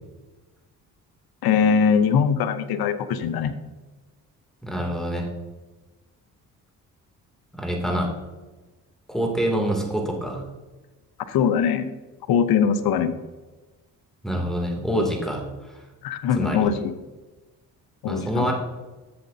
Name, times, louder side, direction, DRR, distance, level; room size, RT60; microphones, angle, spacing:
voice 1, 1.4-3.5 11.3-11.9 12.3-13.1 16.0-16.9 18.0-18.5, left 7 dB, 75° left, 11 dB, 0.8 m, -21 dB
voice 2, 4.6-5.3 7.6-8.1 9.1-10.4 14.2-15.8 16.3-16.7 18.1-18.5, equal, ahead, 0 dB, 2.6 m, -26 dB
11.5 x 7.4 x 2.8 m, 1.2 s
cardioid pair, 75°, 37 cm